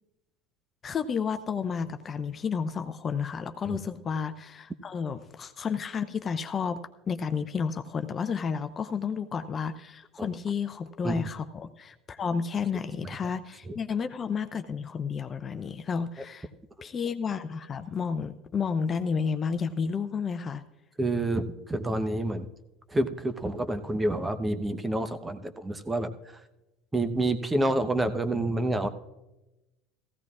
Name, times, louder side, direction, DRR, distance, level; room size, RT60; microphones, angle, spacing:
voice 1, 0.8-6.8 7.1-16.5 16.8-20.6, left 6 dB, 35° left, 9 dB, 0.6 m, -31 dB
voice 2, 21.0-22.5 22.9-26.4 26.9-28.9, right 1 dB, 15° right, 10 dB, 0.9 m, -28 dB
16.0 x 15.5 x 2.4 m, 1.0 s
hypercardioid pair, 75°, 0 cm